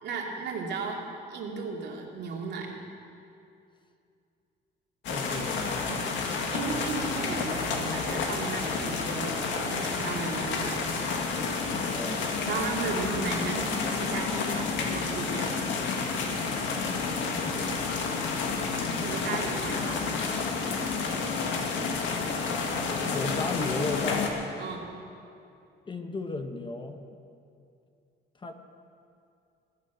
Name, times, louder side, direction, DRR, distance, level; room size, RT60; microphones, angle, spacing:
voice 1, 0.0-1.0 1.3-2.7 5.3-5.5 5.9-6.1 6.5-10.8 12.5-15.5 18.7-20.0 24.6-24.9, right 4 dB, 60° right, 0 dB, 2.4 m, -35 dB
sound 1, 5.0-24.3, left 4 dB, 75° left, 1.9 m, -30 dB
voice 2, 5.1-6.1 11.7-12.4 17.3-17.9 22.6-24.4 25.9-27.0 28.4-28.5, left 3 dB, 25° left, 6 dB, 1.0 m, -36 dB
21.0 x 9.3 x 6.1 m, 2.6 s
cardioid pair, 105°, 19 cm